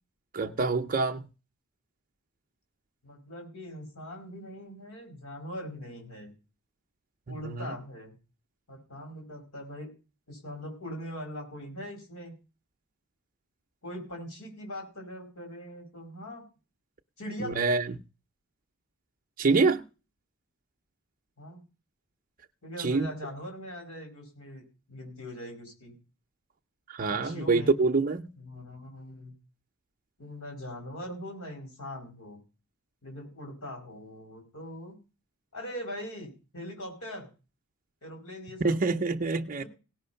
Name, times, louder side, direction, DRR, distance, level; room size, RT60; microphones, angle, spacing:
voice 1, 0.3-1.3 7.4-7.7 17.4-17.8 19.4-19.8 22.8-23.1 26.9-28.3 38.6-39.6, right 4 dB, 40° right, 0.6 m, -26 dB
voice 2, 3.0-6.3 7.3-8.2 8.7-9.9 10.3-12.3 13.8-16.4 17.2-17.6 21.4-21.7 22.6-25.9 27.1-27.7 28.3-29.3 30.2-32.4 33.0-35.0 35.5-37.3 38.0-38.8, equal, 70° left, 5.1 m, -41 dB
17.5 x 6.0 x 5.6 m
head